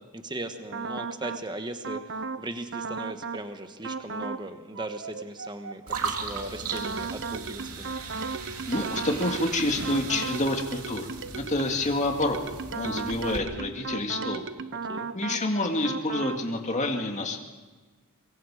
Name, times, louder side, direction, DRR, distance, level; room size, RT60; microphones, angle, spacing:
voice 1, 0.1-8.0 14.9-15.1, right 1 dB, 20° right, 7 dB, 1.4 m, -38 dB
sound 1, 0.7-1.4 1.8-2.4 2.7-3.4 3.8-4.4 4.8-11.8 12.2-15.4 15.8-16.4, right 4 dB, 55° right, 0.9 m, -35 dB
sound 2, 5.9-13.4, right 4 dB, 90° right, 2.6 m, -37 dB
voice 2, 8.7-12.4 12.7-14.4 15.1-17.4, left 2 dB, 35° left, 3 dB, 2.1 m, -28 dB
24.5 x 24.0 x 5.0 m, 1.3 s
head